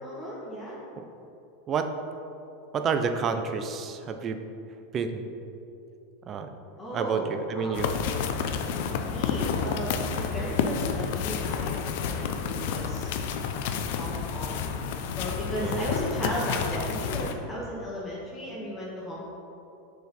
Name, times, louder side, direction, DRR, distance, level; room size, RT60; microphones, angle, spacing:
voice 1, 0.0-0.8 6.8-7.9 9.1-11.8 12.1-13.1 13.7-14.6 15.1-19.2, equal, 20° left, -6 dB, 1.4 m, -35 dB
voice 2, 2.7-4.4 4.9-5.3 6.3-6.5 6.9-7.9 15.6-15.9, right 5 dB, 30° right, 7 dB, 0.5 m, -29 dB
sound 1, 7.7-17.3, left 6 dB, 65° left, 0.5 m, -30 dB
6.7 x 4.2 x 4.1 m, 2.9 s
supercardioid pair, 125°, 0 cm